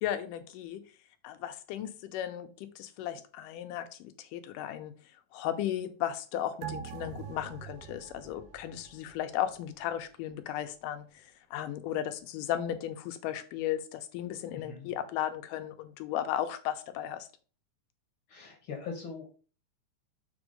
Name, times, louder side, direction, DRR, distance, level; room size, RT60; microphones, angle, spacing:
voice 1, 0.0-0.8 1.2-4.9 5.3-17.3, left 11 dB, 90° left, 2.3 m, -35 dB
sound 1, 6.6-9.5 9.9-10.0, right 9 dB, 85° right, 2.5 m, -44 dB
voice 2, 14.5-14.9 18.3-19.3, left 5 dB, 60° left, 1.4 m, -41 dB
7.1 x 3.5 x 5.2 m
omnidirectional pair, 3.7 m